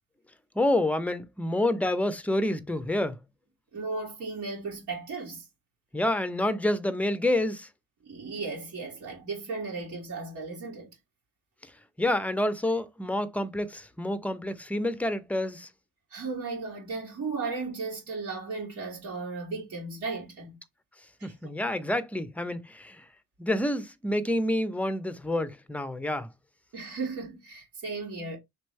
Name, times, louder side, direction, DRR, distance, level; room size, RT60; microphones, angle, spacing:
voice 1, 0.5-3.2 5.9-7.7 11.6-11.7 12.0-15.7 21.2-23.0 23.4-26.3, left 1 dB, 5° left, 0.6 m, -28 dB
voice 2, 3.7-5.5 8.0-10.9 16.1-20.6 21.2-21.3 26.7-28.4, right 4 dB, 70° right, 2.2 m, -35 dB
5.2 x 3.1 x 3.2 m
cardioid pair, 90°, 30 cm